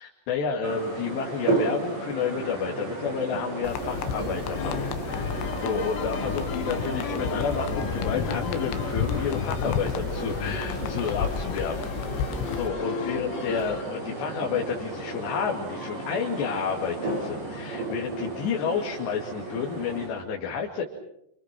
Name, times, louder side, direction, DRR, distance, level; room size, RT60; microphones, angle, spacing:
voice 1, 0.0-11.9 12.2-20.8, left 6 dB, 70° left, 0 dB, 4.5 m, -30 dB
sound 1, 0.6-20.1, right 2 dB, 75° right, 10.5 m, -34 dB
sound 2, 3.6-12.7, left 8 dB, 90° left, 3.6 m, -32 dB
sound 3, 4.2-13.8, left 7 dB, 55° left, 2.3 m, -37 dB
29.0 x 27.5 x 6.1 m, 0.77 s
omnidirectional pair, 5.1 m